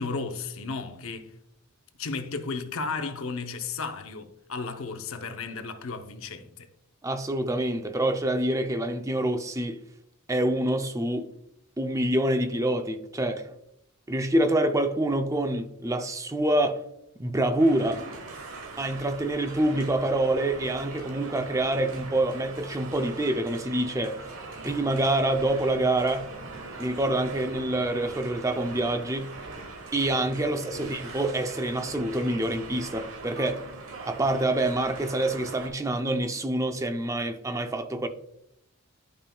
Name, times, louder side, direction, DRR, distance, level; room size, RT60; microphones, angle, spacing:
voice 1, 0.0-1.3 2.0-6.7 30.4-30.9, left 4 dB, 65° left, 0.7 m, -34 dB
voice 2, 7.0-9.8 10.3-11.3 11.8-13.5 14.1-16.9 17.2-18.1 18.8-24.2 24.6-26.3 26.8-29.3 29.9-33.7 34.0-38.1, right 1 dB, 15° right, 0.4 m, -26 dB
sound 1, 17.6-35.7, right 3 dB, 65° right, 1.1 m, -41 dB
11.5 x 5.3 x 2.3 m
head